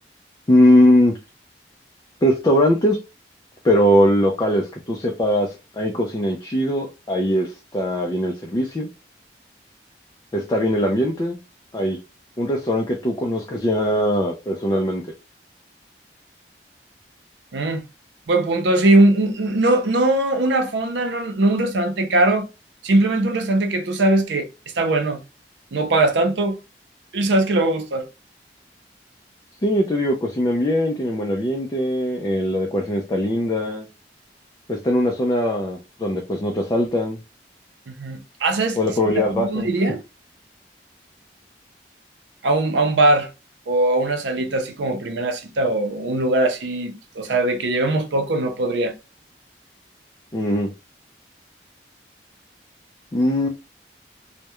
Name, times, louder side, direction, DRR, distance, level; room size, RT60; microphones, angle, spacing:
voice 1, 0.5-1.2 2.2-3.0 3.6-8.9 10.3-11.4 11.7-12.0 12.4-15.0 29.6-33.9 34.7-37.2 38.8-39.7 50.3-50.7 53.1-53.5, equal, 20° left, 0.4 m, -20 dB
voice 2, 17.5-17.8 18.3-22.5 22.8-24.5 24.8-25.2 25.7-26.6 27.1-28.1 37.9-38.8 39.3-40.0 42.4-43.3 43.7-48.9, right 2 dB, 85° right, 0.5 m, -20 dB
2.3 x 2.1 x 2.8 m
head